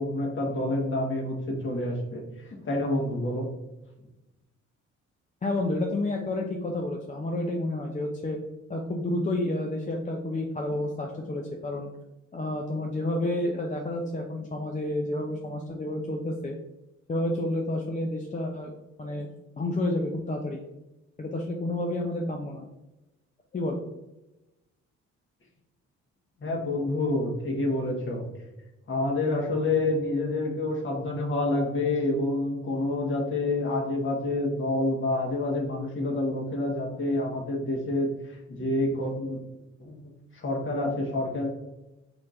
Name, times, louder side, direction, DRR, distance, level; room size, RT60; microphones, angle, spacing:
voice 1, 0.0-3.4 26.4-28.3 28.9-39.4 39.8-41.5, left 2 dB, 40° left, -1 dB, 1.4 m, -28 dB
voice 2, 5.4-8.4 8.7-11.9 12.3-16.6 17.1-18.7 19.0-19.3 19.6-20.6 21.2-22.7 23.5-23.8, left 1 dB, 25° left, 1 dB, 0.5 m, -30 dB
4.3 x 4.2 x 2.5 m, 0.98 s
cardioid pair, 90°, 30 cm